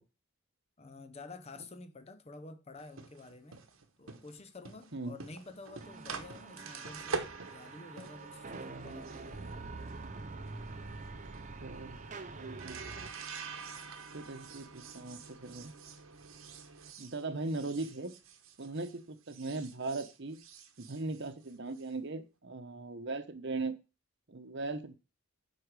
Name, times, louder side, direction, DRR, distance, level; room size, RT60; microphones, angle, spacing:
voice 1, 0.8-3.6 4.0-7.2 7.5-9.4, left 3 dB, 30° left, 0.7 m, -50 dB
sound 1, 2.8-19.0 19.3-21.9, right 4 dB, 80° right, 1.1 m, -46 dB
sound 2, 5.8-13.1, right 3 dB, 35° right, 0.7 m, -46 dB
voice 2, 11.6-12.0 12.3-12.8 14.1-15.7 17.0-18.1 18.6-20.4 20.8-23.8 24.3-24.9, right 3 dB, 55° right, 0.9 m, -39 dB
8.0 x 5.0 x 4.8 m
head